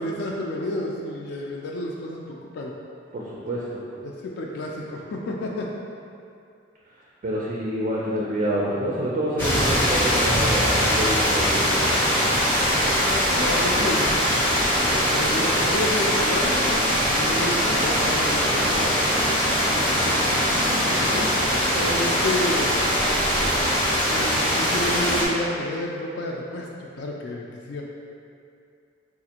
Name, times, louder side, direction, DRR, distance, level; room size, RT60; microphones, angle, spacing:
voice 1, 0.0-2.7 4.0-5.7 13.1-20.6 20.8-21.4 21.7-22.8 24.1-26.7 27.0-27.8, left 1 dB, 60° left, -2 dB, 0.3 m, -31 dB
voice 2, 3.1-3.8 7.2-11.8 12.8-13.0, equal, 40° right, -5 dB, 0.4 m, -27 dB
sound 1, 9.4-25.3, equal, 10° left, 0.6 m, -22 dB
4.2 x 2.4 x 2.8 m, 2.4 s
head